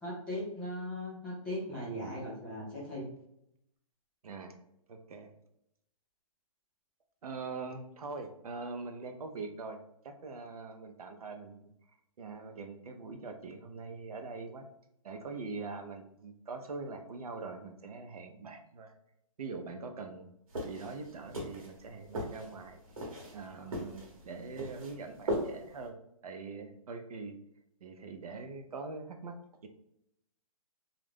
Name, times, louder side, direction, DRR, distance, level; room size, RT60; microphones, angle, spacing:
voice 1, 0.0-3.1, left 1 dB, 5° left, -8 dB, 0.4 m, -38 dB
voice 2, 4.9-5.3 7.2-9.8 10.0-11.7 12.2-14.6 15.0-18.9 19.4-20.3 20.6-22.8 23.3-25.9 26.2-27.3 27.8-29.3, right 4 dB, 90° right, 5 dB, 0.5 m, -43 dB
sound 1, 20.5-25.9, equal, 75° right, 1.0 m, -39 dB
2.4 x 2.0 x 3.2 m, 0.78 s
hypercardioid pair, 165°, 18 cm